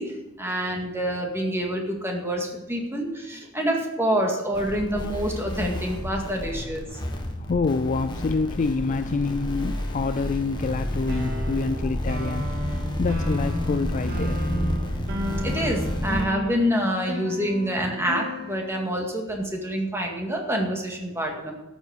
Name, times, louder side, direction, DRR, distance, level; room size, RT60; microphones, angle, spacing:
voice 1, 0.0-6.8 15.4-21.5, equal, 10° right, 1 dB, 2.0 m, -27 dB
sound 1, 4.5-16.2, left 1 dB, 20° left, 1.4 m, -30 dB
voice 2, 6.5-14.5, left 4 dB, 35° left, 10 dB, 0.4 m, -27 dB
sound 2, 11.1-19.0, left 1 dB, 50° right, 2.0 m, -35 dB
12.5 x 7.2 x 6.4 m, 0.99 s
head